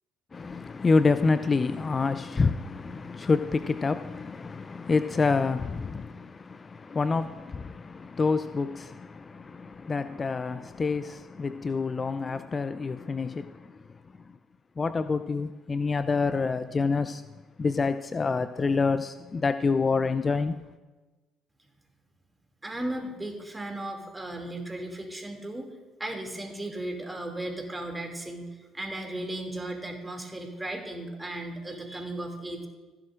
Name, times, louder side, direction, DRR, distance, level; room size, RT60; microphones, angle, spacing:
voice 1, 0.3-13.8 14.8-17.2 17.6-20.6, left 4 dB, 30° left, 0.4 m, -27 dB
voice 2, 22.6-25.7 26.0-32.7, right 1 dB, 15° right, 2.5 m, -36 dB
15.5 x 10.5 x 2.5 m
hypercardioid pair, 60°, 0 cm